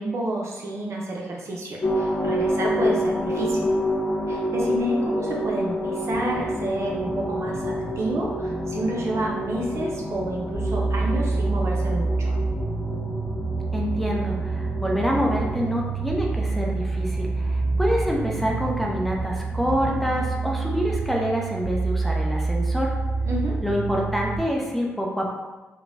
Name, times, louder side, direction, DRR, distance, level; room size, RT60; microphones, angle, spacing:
voice 1, 0.0-3.7 4.3-12.3 23.2-23.6, right 1 dB, 60° right, -2 dB, 0.6 m, -29 dB
sound 1, 1.8-15.6, equal, 45° left, 0.5 m, -28 dB
sound 2, 6.1-20.3, equal, 85° left, 0.8 m, -37 dB
sound 3, 10.5-24.4, right 3 dB, 30° right, 1.4 m, -27 dB
voice 2, 13.7-22.9 23.6-25.3, equal, 5° left, -2 dB, 0.7 m, -26 dB
3.0 x 2.2 x 2.5 m, 1.2 s
supercardioid pair, 40°, 5 cm